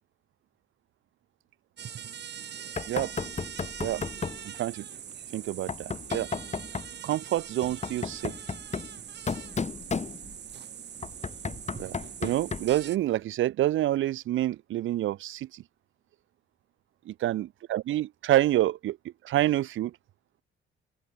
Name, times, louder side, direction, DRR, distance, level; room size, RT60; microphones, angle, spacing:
Mosquito and Fly, 1.8-13.0, right 9 dB, 60° right, 7.6 m, -42 dB
Knock, 2.8-4.5 5.7-7.0 7.6-10.5 11.0-12.8, left 5 dB, 35° left, 4.3 m, -34 dB
voice 1, 5.3-6.3 7.0-8.3 11.8-11.9 12.2-15.6 17.1-19.0 19.2-19.9, right 14 dB, 80° right, 1.5 m, -27 dB
open air
cardioid pair, 90°, 20 cm